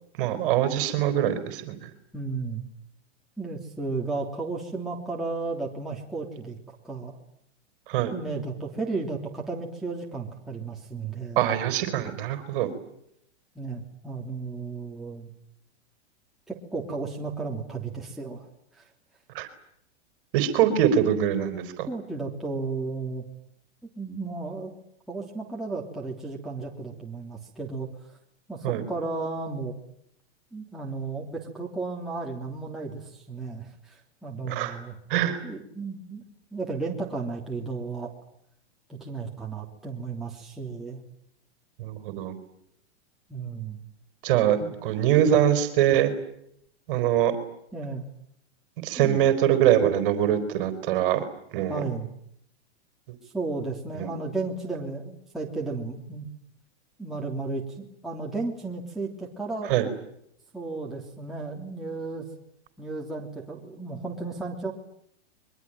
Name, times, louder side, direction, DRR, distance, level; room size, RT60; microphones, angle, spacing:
voice 1, 0.2-1.9 7.9-8.1 11.4-12.7 19.3-19.5 20.3-21.9 28.6-28.8 34.4-34.8 35.1-35.4 41.8-42.3 44.2-46.1 46.9-47.3 48.8-51.3 51.5-51.8 53.9-54.1 59.7-59.9, right 10 dB, 50° right, 10 dB, 4.2 m, -23 dB
voice 2, 2.1-2.6 3.4-7.2 8.1-11.4 13.5-15.3 16.5-18.9 21.8-23.2 24.0-24.7 25.1-28.2 28.5-29.7 30.5-35.0 35.4-36.2 36.5-38.1 38.9-41.0 43.3-43.8 44.6-44.7 47.7-48.0 49.0-49.2 51.7-52.1 53.2-56.3 57.0-59.7 60.5-62.3 62.8-64.7, right 3 dB, ahead, -3 dB, 3.3 m, -34 dB
26.0 x 23.5 x 9.2 m, 0.72 s
hypercardioid pair, 145°, 34 cm